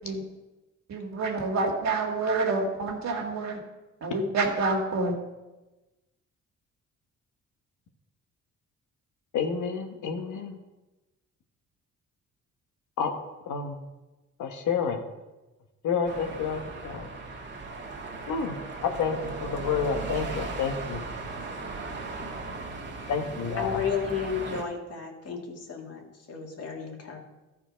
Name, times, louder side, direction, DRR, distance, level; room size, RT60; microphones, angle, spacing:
voice 1, 0.9-3.6 4.0-5.1, right 3 dB, 65° right, 1 dB, 2.0 m, -27 dB
voice 2, 9.3-10.6 13.0-13.1 13.5-13.8 14.4-15.0 15.8-17.1 18.3-18.6 18.8-21.0 23.1-23.8, left 6 dB, 80° left, 5 dB, 1.2 m, -29 dB
sound 1, 16.1-24.6, right 3 dB, 35° right, 1.5 m, -37 dB
voice 3, 23.6-27.2, left 6 dB, 55° left, 1 dB, 1.9 m, -33 dB
13.0 x 4.5 x 5.1 m, 1.1 s
cardioid pair, 90°, 30 cm